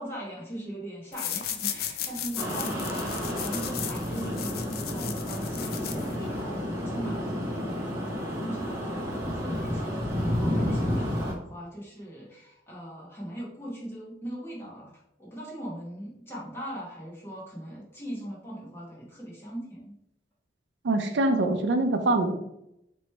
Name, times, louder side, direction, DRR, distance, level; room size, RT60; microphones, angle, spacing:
voice 1, 0.0-20.0, right 1 dB, 15° left, -6 dB, 1.2 m, -40 dB
sound 1, 1.1-6.4, left 10 dB, 55° left, 0.4 m, -36 dB
sound 2, 2.4-11.3, equal, 15° right, 0.8 m, -31 dB
voice 2, 20.8-22.4, right 2 dB, 75° right, 6 dB, 0.4 m, -24 dB
3.0 x 3.0 x 4.4 m, 0.82 s
head